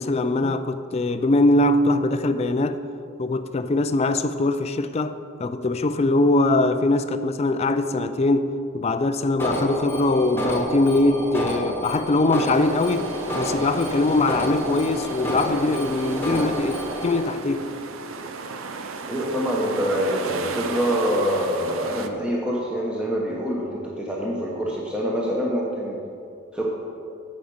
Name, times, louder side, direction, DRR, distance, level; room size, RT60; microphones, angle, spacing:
voice 1, 0.0-2.8 3.2-17.8, left 2 dB, 30° left, 11 dB, 0.4 m, -22 dB
Alarm, 9.4-17.2, equal, 10° left, 1.2 m, -29 dB
sound 1, 12.5-22.1, right 4 dB, 70° right, 0.6 m, -35 dB
voice 2, 19.1-26.0 26.5-26.7, equal, 5° right, -4 dB, 0.9 m, -25 dB
9.3 x 5.2 x 7.0 m, 2.6 s
head